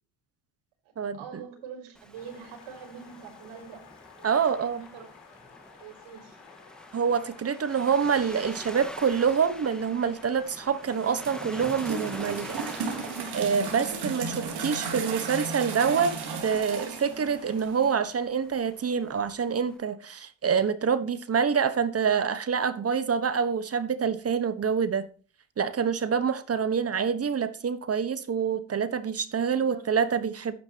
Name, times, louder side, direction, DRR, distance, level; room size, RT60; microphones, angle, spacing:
voice 1, 1.1-5.1 5.8-6.4 29.4-29.9, right 7 dB, 75° right, 5.5 m, -45 dB
Waves surf, 1.9-19.8, equal, ahead, 1.6 m, -46 dB
sound 1, 2.1-17.7, left 7 dB, 55° left, 3.8 m, -53 dB
voice 2, 4.2-4.8 6.9-12.6 13.3-16.1 16.4-25.0 25.6-30.5, right 6 dB, 30° right, 1.2 m, -26 dB
sound 2, 10.8-17.9, right 5 dB, 50° right, 4.3 m, -35 dB
11.5 x 9.8 x 2.9 m
cardioid pair, 125°, 49 cm